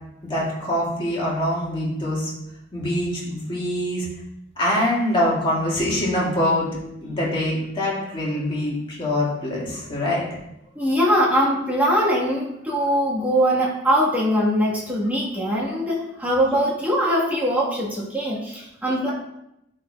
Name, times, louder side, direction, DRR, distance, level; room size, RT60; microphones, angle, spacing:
voice 1, 0.2-2.3 2.7-4.1 4.6-10.3, left 1 dB, 30° left, -5 dB, 1.9 m, -24 dB
voice 2, 10.7-19.1, equal, 10° right, -5 dB, 1.4 m, -22 dB
10.5 x 4.1 x 2.3 m, 0.83 s
head